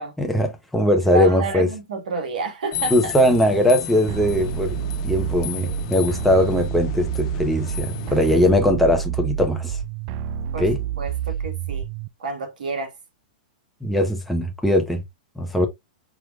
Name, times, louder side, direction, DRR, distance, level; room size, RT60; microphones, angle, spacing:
voice 1, 0.2-1.7 2.9-4.8 5.0-9.8 10.6-10.8 13.8-15.0 15.4-15.7, left 1 dB, ahead, 0.8 m, -20 dB
voice 2, 1.1-3.1 10.5-10.7 11.0-11.9 12.2-12.9, right 3 dB, 75° right, 1.5 m, -29 dB
sound 1, 2.7-8.5, left 10 dB, 50° left, 0.6 m, -33 dB
sound 2, 4.1-12.1, right 9 dB, 50° right, 0.3 m, -28 dB
4.8 x 3.1 x 2.4 m
hypercardioid pair, 115°, 5 cm